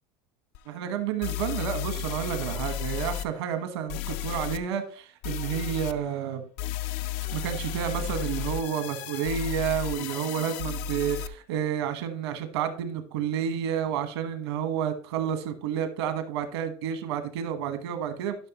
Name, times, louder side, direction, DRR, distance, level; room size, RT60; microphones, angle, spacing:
sound 1, 0.5-0.6 1.2-3.3 3.9-4.6 5.2-5.9 6.6-11.3, left 9 dB, 70° left, 0.5 m, -33 dB
voice 1, 0.7-6.4 7.3-18.4, right 9 dB, 85° right, 8 dB, 1.2 m, -30 dB
12.0 x 5.7 x 2.9 m, 0.43 s
supercardioid pair, 125°, 13 cm